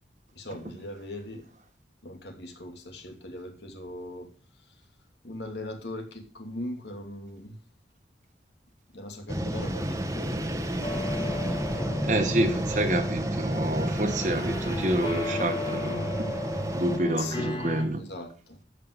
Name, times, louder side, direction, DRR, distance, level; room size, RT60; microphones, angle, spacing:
voice 1, 0.3-1.5 2.0-4.9 5.2-7.6 8.9-12.8 17.2-18.6, left 1 dB, 80° left, 2.8 m, -40 dB
sound 1, 9.3-17.0, right 1 dB, 20° right, 1.0 m, -31 dB
sound 2, 10.8-17.9, left 2 dB, 30° left, 1.8 m, -35 dB
voice 2, 12.1-16.3 16.7-18.0, right 1 dB, 45° right, 1.3 m, -28 dB
13.0 x 5.8 x 6.6 m
head